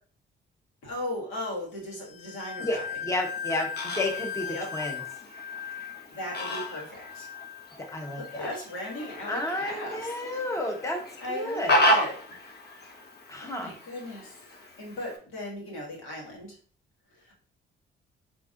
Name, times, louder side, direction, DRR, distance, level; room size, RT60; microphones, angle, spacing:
voice 1, 0.8-3.0 4.5-4.8 5.7-7.3 8.2-10.2 11.2-12.4 13.4-16.6 17.1-17.3, left 1 dB, 85° left, -2 dB, 1.8 m, -37 dB
sound 1, 2.0-10.9 11.3-11.7 12.2-12.5, left 8 dB, 35° left, 0.5 m, -40 dB
voice 2, 3.0-4.5 4.7-5.0 7.9-8.5 9.3-11.0 11.3-11.8 13.3-13.7, left 1 dB, 15° left, 3 dB, 1.0 m, -31 dB
Fowl, 3.2-15.2, equal, 55° left, 1.0 m, -33 dB
5.1 x 3.7 x 2.5 m, 0.43 s
cardioid pair, 90°, 20 cm